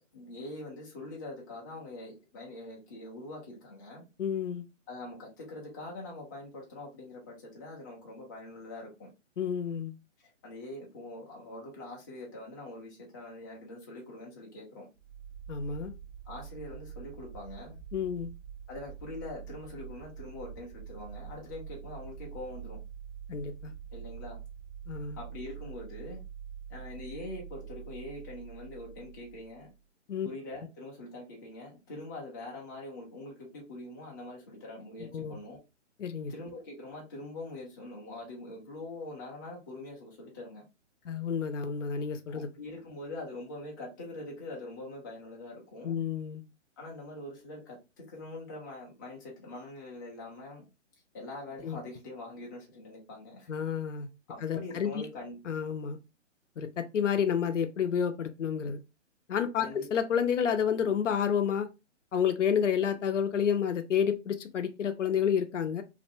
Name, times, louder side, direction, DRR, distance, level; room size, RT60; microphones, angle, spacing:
voice 1, 0.0-4.1 4.9-9.1 10.2-14.9 16.3-17.8 18.7-22.8 23.9-24.4 25.2-26.2 26.7-29.7 30.2-35.6 36.3-40.7 42.3-46.0 46.8-50.6 51.1-53.5 54.3-55.4 59.6-59.9, left 2 dB, 15° left, 0.4 m, -43 dB
voice 2, 4.2-4.7 9.4-9.9 15.5-15.9 17.9-18.3 23.3-23.7 24.9-25.2 30.1-30.3 35.0-35.3 36.0-36.3 41.1-42.5 45.8-46.4 51.6-51.8 53.5-54.1 54.4-55.0 55.5-56.0 56.6-58.8 59.3-61.7 62.1-65.8, left 7 dB, 75° left, 0.6 m, -30 dB
sound 1, 15.0-29.8, right 8 dB, 45° right, 0.6 m, -45 dB
2.6 x 2.1 x 2.6 m
hypercardioid pair, 145°, 37 cm